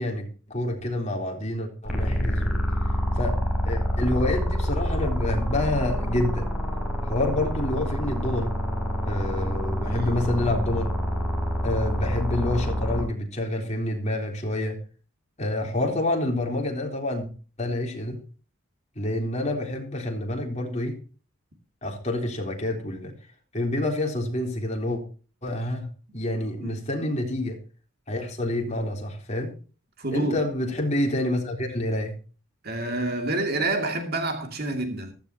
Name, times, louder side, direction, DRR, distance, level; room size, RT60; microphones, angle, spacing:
voice 1, 0.0-2.6 3.1-3.4 3.6-6.5 7.0-8.6 9.1-10.9 11.6-14.8 15.4-17.3 17.6-18.2 19.0-21.0 21.8-23.1 23.5-25.0 25.4-27.6 28.1-29.5 30.1-32.2, left 1 dB, 35° left, 3.7 m, -28 dB
sound 1, 1.8-13.0, equal, 5° right, 5.0 m, -26 dB
voice 2, 9.8-10.2 26.6-26.8 30.0-30.4 32.6-35.1, right 2 dB, 50° right, 2.5 m, -28 dB
15.0 x 13.5 x 2.9 m
head